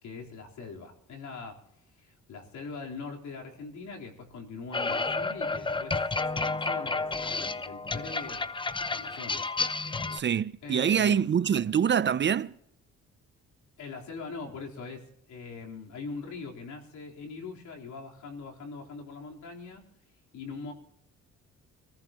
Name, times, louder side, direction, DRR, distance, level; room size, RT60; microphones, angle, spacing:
voice 1, 0.0-1.6 2.0-8.5 8.9-10.1 10.6-11.3 13.8-19.8 20.3-20.7, left 4 dB, 70° left, 4.0 m, -42 dB
sound 1, 4.7-10.2, left 3 dB, 15° left, 0.7 m, -31 dB
voice 2, 10.1-12.5, right 8 dB, 40° right, 0.6 m, -25 dB
25.5 x 14.5 x 3.0 m
cardioid pair, 90°, 30 cm